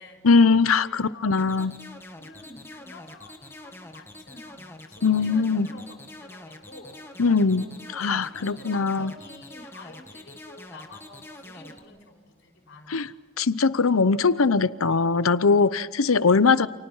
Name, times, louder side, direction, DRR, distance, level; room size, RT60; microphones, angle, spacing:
voice 1, 0.2-1.7 5.0-5.7 7.2-9.1 12.9-13.1 13.4-16.7, left 4 dB, 90° left, 0.8 m, -21 dB
voice 2, 0.8-1.6 2.2-7.2 7.5-13.1, left 2 dB, 60° left, 5.4 m, -48 dB
sound 1, 1.4-11.8, left 1 dB, 10° left, 1.8 m, -45 dB
29.5 x 29.5 x 5.6 m
head